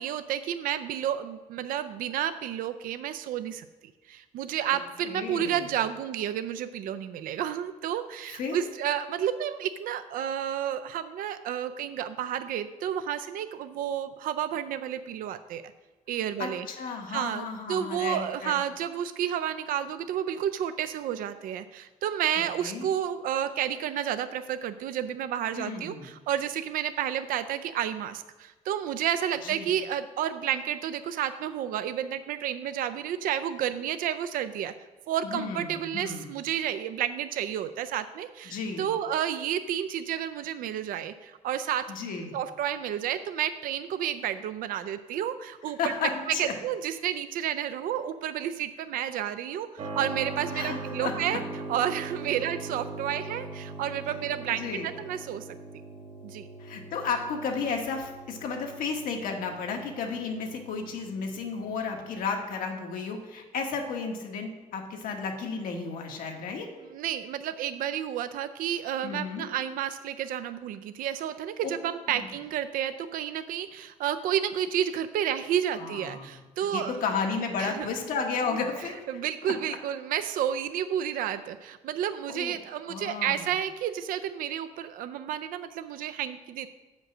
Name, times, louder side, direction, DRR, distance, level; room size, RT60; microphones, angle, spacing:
voice 1, 0.0-3.6 4.1-15.6 16.1-16.7 17.1-34.7 35.1-41.8 42.3-45.8 46.4-51.4 51.7-55.4 56.2-56.5 66.9-77.0 77.6-77.9 79.1-86.7, right 10 dB, 80° right, 10 dB, 0.4 m, -31 dB
voice 2, 4.7-5.7 8.3-8.6 16.4-18.6 22.3-22.9 25.5-26.1 29.4-29.7 35.2-36.3 38.4-38.9 41.9-42.3 45.8-46.5 50.5-51.2 54.5-54.9 56.6-66.7 69.0-69.5 72.1-72.3 75.8-76.3 76.7-79.0 79.4-79.5 82.3-82.6 82.9-83.5, left 5 dB, 85° left, 2 dB, 1.4 m, -33 dB
Keyboard (musical), 49.8-62.2, right 3 dB, 55° right, 1.5 m, -41 dB
7.6 x 5.2 x 6.0 m, 1.3 s
cardioid pair, 120°, 14 cm